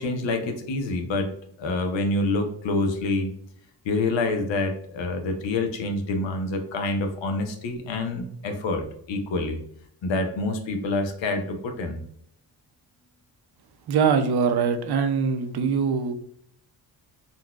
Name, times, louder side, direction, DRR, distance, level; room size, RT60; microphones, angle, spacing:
voice 1, 0.0-1.3 1.6-3.3 3.8-9.6 10.0-12.0, left 2 dB, 80° left, 5 dB, 0.7 m, -27 dB
voice 2, 13.9-16.1, right 6 dB, 60° right, 8 dB, 0.6 m, -23 dB
3.8 x 2.3 x 2.3 m, 0.66 s
cardioid pair, 75°, 44 cm